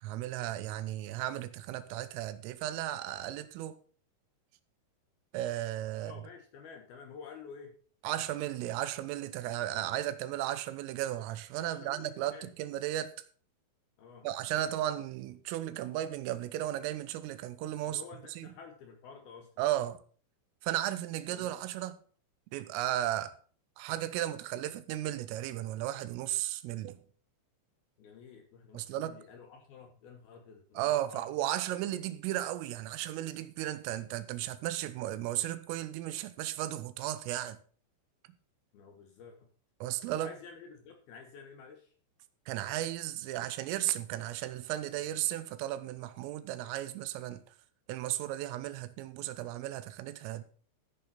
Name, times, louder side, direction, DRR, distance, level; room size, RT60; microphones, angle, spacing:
voice 1, 0.0-3.8 5.3-6.1 8.0-13.1 14.2-18.0 18.4-18.5 19.6-20.0 20.6-22.0 22.5-23.4 23.8-27.0 28.7-29.2 30.8-37.6 39.8-40.3 42.5-47.4 47.9-50.4, right 13 dB, 85° right, 3.4 m, -35 dB
voice 2, 6.0-7.8 11.6-12.5 14.0-14.3 17.8-19.5 21.3-21.6 28.0-31.4 38.7-39.5 40.2-41.9, left 6 dB, 65° left, 2.5 m, -50 dB
14.5 x 8.6 x 4.2 m
omnidirectional pair, 5.8 m